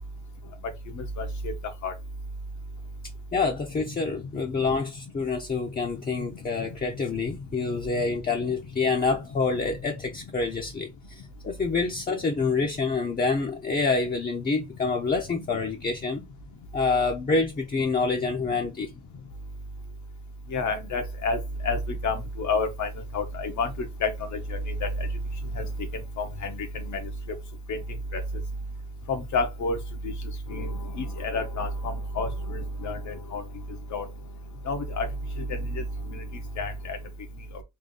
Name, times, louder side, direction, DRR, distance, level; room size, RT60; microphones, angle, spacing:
voice 1, 3.3-16.2 16.7-18.9, left 4 dB, 30° left, 0.8 m, -27 dB
voice 2, 20.5-21.4 21.6-23.7 24.0-24.1 24.8-24.9 25.6-25.7 26.2-27.0 27.7-27.8 28.1-28.2 29.1-29.8 30.5-30.7 31.0-33.4 33.9-34.0 34.7-35.1 35.7-35.8 36.6-37.0, left 3 dB, 70° left, 1.3 m, -29 dB
3.6 x 2.6 x 3.9 m
cardioid pair, 90°, 30 cm